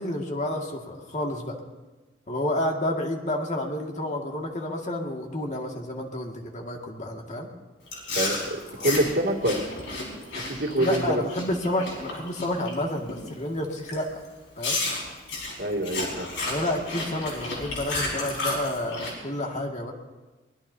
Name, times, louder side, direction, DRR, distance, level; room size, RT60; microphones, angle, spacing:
voice 1, 0.0-1.6 2.3-7.5 10.8-14.1 14.6-14.8 16.4-19.9, left 1 dB, 40° left, 0 dB, 2.1 m, -30 dB
Chewing mastication, 7.9-12.7 13.1-13.4 13.9-14.0 14.6-19.1, left 2 dB, 85° left, 5.3 m, -32 dB
voice 2, 8.1-9.6 10.5-11.2 15.6-16.3, right 1 dB, 70° right, 0 dB, 2.4 m, -26 dB
23.5 x 20.5 x 2.8 m, 1.2 s
head